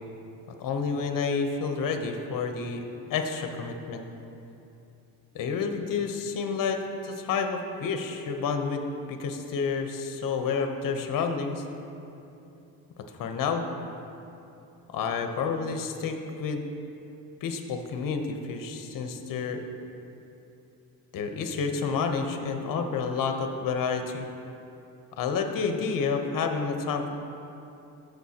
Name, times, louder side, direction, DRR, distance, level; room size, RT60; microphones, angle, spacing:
voice 1, 0.6-2.8 3.1-4.0 5.3-8.8 9.1-11.6 13.2-13.7 14.9-16.6 17.4-19.6 21.1-24.2 25.2-27.1, left 5 dB, 55° left, 5 dB, 0.9 m, -29 dB
14.0 x 6.6 x 2.9 m, 2.8 s
cardioid pair, 125°, 40 cm